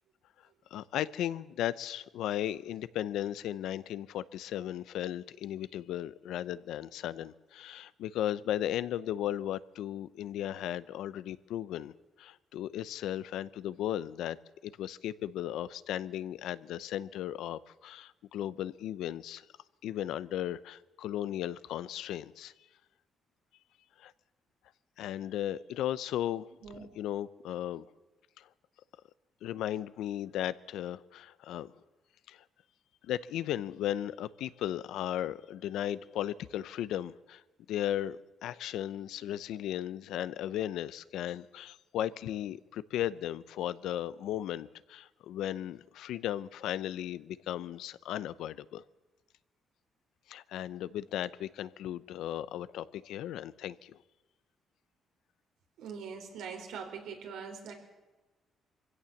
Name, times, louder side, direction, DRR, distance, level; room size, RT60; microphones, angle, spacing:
voice 1, 0.7-11.9 12.2-14.4 14.6-19.5 19.8-22.5 24.0-24.1 25.0-26.5 26.9-27.9 28.4-28.5 29.4-31.7 32.3-32.4 33.0-37.4 37.7-48.8 50.3-54.0, left 12 dB, 85° left, 16 dB, 0.6 m, -36 dB
voice 2, 55.8-57.7, right 6 dB, 85° right, 3 dB, 4.2 m, -42 dB
23.0 x 16.0 x 7.2 m, 1.1 s
cardioid pair, 90°, 0 cm